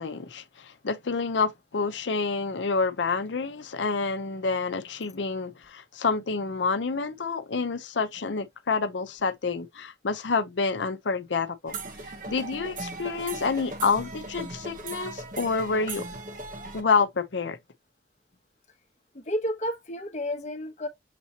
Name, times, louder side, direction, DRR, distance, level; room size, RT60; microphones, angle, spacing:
voice 1, 0.0-11.8 12.3-16.0 16.7-17.6, left 4 dB, 85° left, 0.7 m, -28 dB
sound 1, 11.7-16.8, right 3 dB, 45° right, 0.9 m, -38 dB
voice 2, 19.1-20.9, equal, 40° left, 0.9 m, -31 dB
6.7 x 2.8 x 2.8 m
head